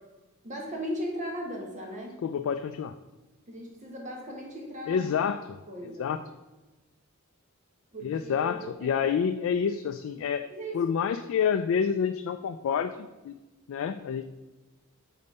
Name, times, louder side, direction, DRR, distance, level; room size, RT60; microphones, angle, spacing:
voice 1, 0.4-2.2 3.5-5.1 5.7-6.1 7.9-9.1 10.5-10.8, equal, 35° right, 0 dB, 1.1 m, -37 dB
voice 2, 2.2-2.9 4.9-5.6 6.0-6.2 8.0-10.5 10.7-13.3 13.7-14.2, left 7 dB, 70° left, 8 dB, 0.3 m, -28 dB
5.2 x 4.1 x 5.4 m, 1.1 s
head